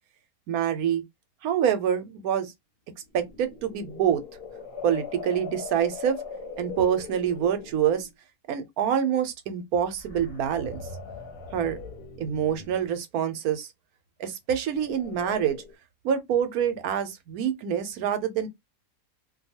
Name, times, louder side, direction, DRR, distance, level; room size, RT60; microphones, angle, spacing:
voice 1, 0.5-1.0 1.4-2.5 3.1-4.2 4.8-6.2 6.6-8.1 8.5-10.8 11.5-11.8 12.2-13.7 14.2-15.6 16.0-18.5, right 9 dB, 90° right, 1.1 m, -26 dB
sound 1, 3.0-8.1 9.8-13.0 14.7-15.7, left 5 dB, 50° left, 0.8 m, -41 dB
2.6 x 2.3 x 2.7 m
omnidirectional pair, 1.5 m